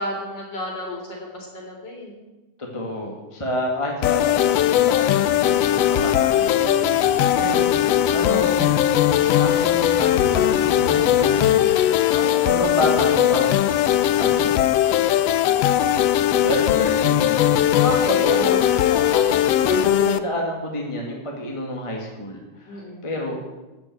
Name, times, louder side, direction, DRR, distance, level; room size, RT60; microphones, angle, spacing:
voice 1, 0.0-2.2 12.1-12.4 17.7-19.6 22.7-23.0, left 1 dB, 35° left, -1 dB, 4.0 m, -31 dB
voice 2, 2.6-8.7 9.4-11.8 12.4-13.9 14.2-14.6 16.4-17.6 18.0-18.6 19.7-23.4, left 1 dB, 15° left, -1 dB, 1.3 m, -29 dB
sound 1, 4.0-20.2, left 11 dB, 80° left, 1.4 m, -19 dB
sound 2, 5.2-11.6, right 3 dB, 70° right, 2.6 m, -36 dB
13.5 x 6.1 x 9.2 m, 1.1 s
omnidirectional pair, 3.5 m